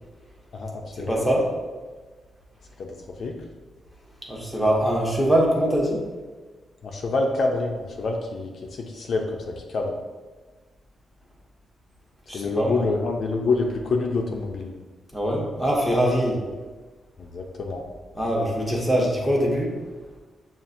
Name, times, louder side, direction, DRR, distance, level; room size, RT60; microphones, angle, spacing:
voice 1, 0.5-1.4 2.8-3.3 6.8-10.0 12.3-14.7 17.2-17.8, left 3 dB, 50° left, 1 dB, 0.4 m, -27 dB
voice 2, 1.1-1.4 4.3-6.0 12.3-12.9 15.1-16.4 18.1-19.8, equal, 5° right, -3 dB, 0.8 m, -23 dB
7.1 x 2.4 x 2.6 m, 1.3 s
wide cardioid pair, 170°, 0 cm